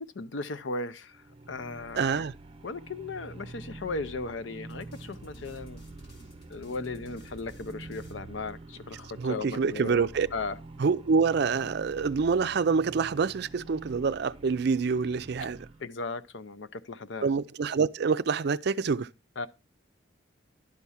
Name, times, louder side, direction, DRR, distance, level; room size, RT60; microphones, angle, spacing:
voice 1, 0.1-2.3 2.6-5.8 6.5-10.6 15.8-17.3 19.4-19.5, left 3 dB, 75° left, 0.6 m, -37 dB
sound 1, 1.1-15.9, right 2 dB, 30° right, 0.7 m, -47 dB
voice 2, 2.0-2.3 9.2-10.3 10.8-15.7 17.2-19.1, right 5 dB, 60° right, 0.4 m, -26 dB
sound 2, 4.7-9.0, right 1 dB, 55° left, 2.7 m, -53 dB
11.5 x 4.7 x 5.6 m
head